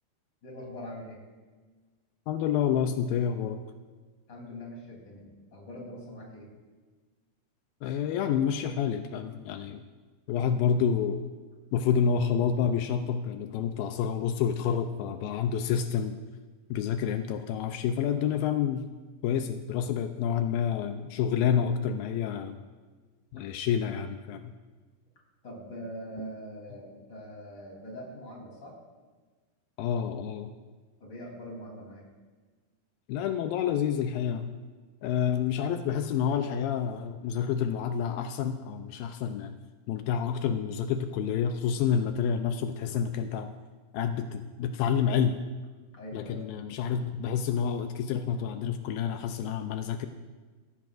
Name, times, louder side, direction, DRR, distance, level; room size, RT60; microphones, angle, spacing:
voice 1, 0.4-1.2 4.3-6.5 25.4-28.7 31.0-32.1 45.9-46.4, equal, 30° left, -3 dB, 3.9 m, -42 dB
voice 2, 2.3-3.6 7.8-9.8 10.3-11.2 11.7-16.2 16.7-18.9 19.2-22.6 23.3-24.6 29.8-30.5 33.1-34.5 35.0-39.5 39.9-43.5 43.9-45.4 46.1-50.1, left 8 dB, 85° left, 7 dB, 2.5 m, -28 dB
20.5 x 15.0 x 2.6 m, 1.4 s
omnidirectional pair, 4.1 m